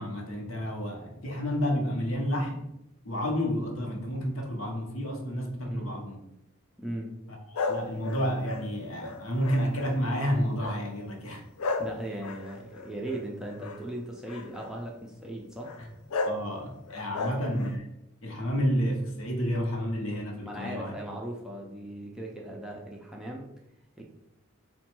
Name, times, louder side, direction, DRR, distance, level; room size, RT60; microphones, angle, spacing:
voice 1, 0.0-2.7 3.0-6.2 7.3-11.4 16.2-17.9 18.2-20.9, equal, 70° left, 1 dB, 0.9 m, -30 dB
voice 2, 6.8-7.1 11.8-15.7 17.1-17.3 20.4-23.5 24.0-24.1, right 1 dB, 5° right, -2 dB, 0.4 m, -38 dB
sound 1, 7.5-10.1 10.6-10.9 11.6-13.8 14.3-14.7 15.6-15.8 16.1-16.4 16.9-17.8, left 3 dB, 90° left, 0.5 m, -34 dB
4.2 x 2.2 x 4.4 m, 0.85 s
head